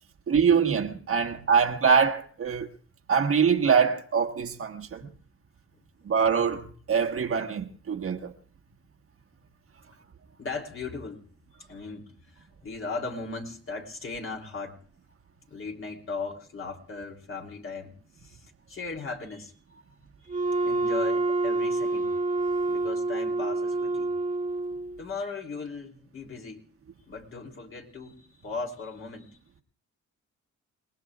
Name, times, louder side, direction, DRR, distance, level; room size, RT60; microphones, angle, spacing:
voice 1, 0.3-2.7 3.1-5.0 6.0-8.3, right 6 dB, 45° right, 1.4 m, -24 dB
voice 2, 10.4-11.2 11.7-14.8 15.5-19.6 20.2-22.1 22.6-24.1 25.0-26.6 27.1-29.4, left 4 dB, 45° left, 3.2 m, -38 dB
Wind instrument woodwind instrument, 20.3-25.0, right 2 dB, 25° right, 1.0 m, -27 dB
29.0 x 19.5 x 2.4 m
cardioid pair, 90°, 30 cm